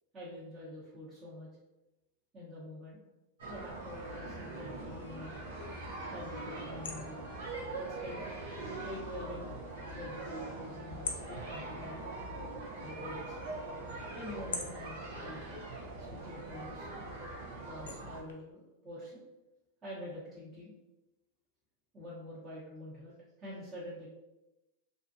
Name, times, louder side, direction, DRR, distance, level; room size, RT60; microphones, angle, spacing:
voice 1, 0.1-1.5 2.3-3.0 3.5-5.3 6.1-7.3 7.8-8.2 8.8-9.5 9.9-12.0 12.8-13.6 14.1-15.4 16.0-17.1 17.6-19.2 19.8-20.7 21.9-24.1, left 1 dB, 25° right, -10 dB, 1.0 m, -46 dB
sound 1, 3.4-18.2, right 2 dB, 80° right, 0.8 m, -42 dB
sound 2, 3.7-18.3, left 4 dB, 80° left, 0.4 m, -49 dB
2.6 x 2.4 x 2.6 m, 0.99 s
hypercardioid pair, 105°, 0 cm